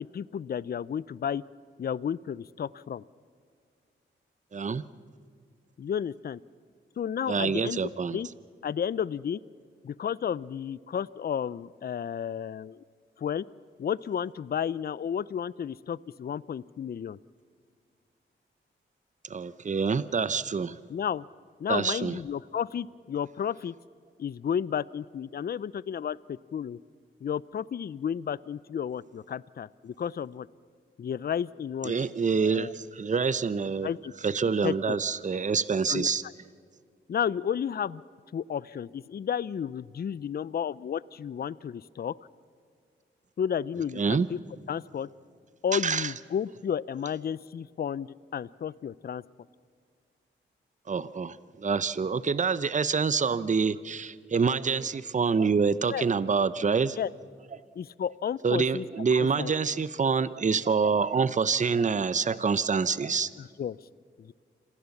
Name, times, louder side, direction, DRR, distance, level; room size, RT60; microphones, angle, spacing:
voice 1, 0.0-1.4 1.8-3.0 5.8-6.4 7.0-8.3 8.6-9.4 9.8-12.8 13.2-13.5 13.8-17.2 20.9-21.3 21.6-23.7 24.2-26.8 27.2-30.5 31.0-32.1 32.4-32.7 33.8-34.1 34.6-35.0 35.9-36.1 37.1-38.0 38.3-42.2 43.4-44.4 44.7-45.1 45.6-49.2 55.9-56.0 57.0-57.1 57.8-58.8 59.1-59.5 63.4-63.8 64.2-64.3, left 8 dB, 45° left, 20 dB, 0.5 m, -32 dB
voice 2, 4.5-4.8 7.3-8.2 19.2-20.8 21.7-22.2 31.8-33.9 34.2-36.2 44.0-44.3 45.7-46.1 50.9-57.0 58.4-63.3, right 5 dB, 35° right, 16 dB, 0.7 m, -26 dB
26.5 x 16.0 x 7.2 m, 2.1 s
cardioid pair, 55°, 21 cm